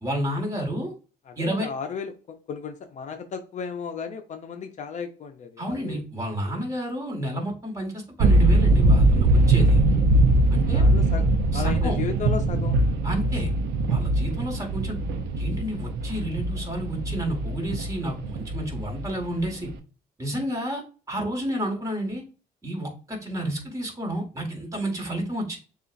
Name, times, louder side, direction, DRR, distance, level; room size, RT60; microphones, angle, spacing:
voice 1, 0.0-0.9 1.4-1.7 5.6-9.8 10.5-10.9 11.5-12.0 13.0-13.5 13.9-15.0 15.4-19.7 20.2-22.2 22.6-25.6, right 1 dB, 20° right, 1 dB, 1.8 m, -30 dB
voice 2, 1.3-6.0 10.7-11.2 11.5-12.8, left 6 dB, 45° left, 7 dB, 0.6 m, -34 dB
sound 1, 8.2-19.7, right 2 dB, 80° right, 0.7 m, -21 dB
6.8 x 2.4 x 2.5 m, 0.36 s
cardioid pair, 110°, 17 cm